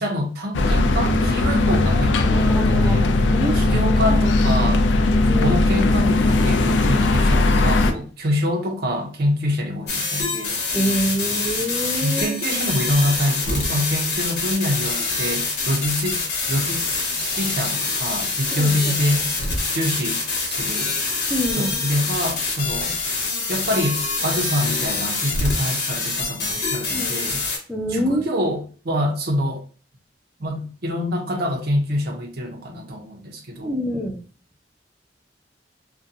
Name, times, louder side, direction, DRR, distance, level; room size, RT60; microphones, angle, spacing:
voice 1, 0.0-3.1 3.5-4.8 5.4-10.6 12.0-16.2 16.5-16.8 17.2-19.3 19.7-20.2 20.5-20.9 21.5-23.0 23.5-27.4 27.9-29.6 30.4-33.7, left 1 dB, 60° right, 0.6 m, -25 dB
sound 1, 0.5-7.9, left 2 dB, 85° left, 0.4 m, -18 dB
voice 2, 2.2-3.6 4.1-4.2 5.3-5.6 10.7-12.4 18.5-19.0 21.3-21.8 26.9-27.3 27.7-28.4 33.6-34.2, equal, 5° right, 0.5 m, -26 dB
sound 2, 9.9-27.6, left 3 dB, 65° left, 0.8 m, -25 dB
2.5 x 2.2 x 2.6 m
head